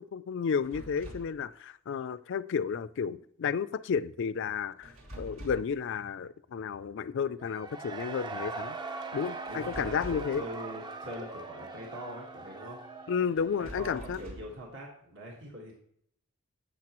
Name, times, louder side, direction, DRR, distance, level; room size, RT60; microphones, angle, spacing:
voice 1, 0.0-8.8 9.1-10.4 13.1-14.2, left 6 dB, 60° left, 16 dB, 0.4 m, -32 dB
sound 1, 0.6-1.4 4.8-5.8 9.5-10.4 13.4-14.6, right 1 dB, 80° right, 2.8 m, -45 dB
Cheering / Crowd, 7.4-14.1, right 3 dB, 20° right, 0.5 m, -41 dB
Bowed string instrument, 8.6-14.5, left 1 dB, 40° right, 3.5 m, -55 dB
voice 2, 9.5-12.8 13.6-15.7, equal, 60° right, -1 dB, 1.6 m, -43 dB
12.0 x 8.0 x 3.0 m, 0.70 s
head